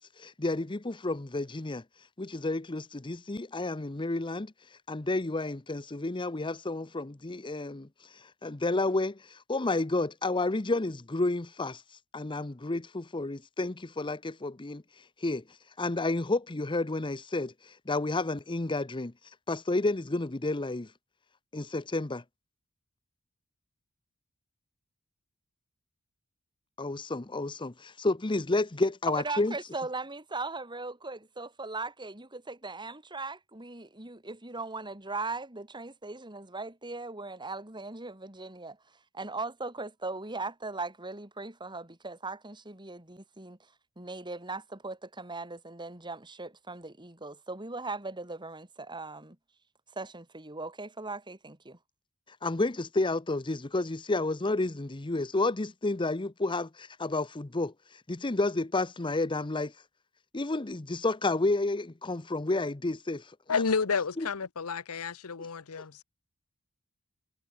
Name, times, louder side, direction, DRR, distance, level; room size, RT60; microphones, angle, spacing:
voice 1, 0.0-1.8 2.2-4.5 4.9-7.9 8.4-11.8 12.1-14.8 15.2-15.4 15.8-17.5 17.9-19.1 19.5-20.9 21.5-22.2 26.8-29.5 52.4-57.7 58.1-59.7 60.3-63.2 64.2-64.3, left 2 dB, 20° left, 0.8 m, -30 dB
voice 2, 29.1-49.4 49.9-51.8, right 3 dB, 20° right, 3.5 m, -39 dB
voice 3, 63.5-66.0, left 5 dB, 90° left, 0.9 m, -30 dB
head